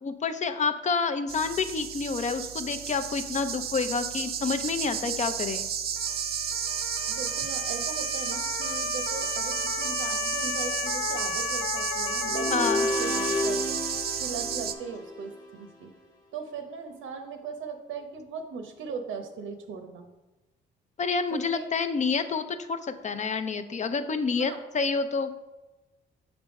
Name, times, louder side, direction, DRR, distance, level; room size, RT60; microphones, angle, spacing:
voice 1, 0.0-5.7 12.5-12.9 21.0-25.3, left 5 dB, 35° left, 10 dB, 0.5 m, -28 dB
sound 1, 1.3-14.7, right 8 dB, 50° right, 0.5 m, -32 dB
Motor vehicle (road) / Siren, 6.0-13.4, left 9 dB, 85° left, 0.5 m, -35 dB
voice 2, 7.1-12.7 13.0-13.8 14.2-15.9 16.3-20.1 21.3-21.7 24.4-24.6, right 5 dB, 80° right, 6 dB, 0.9 m, -39 dB
sound 2, 12.2-15.5, left 1 dB, 20° left, 1.1 m, -31 dB
6.4 x 3.5 x 5.2 m, 1.1 s
cardioid pair, 90°, 20 cm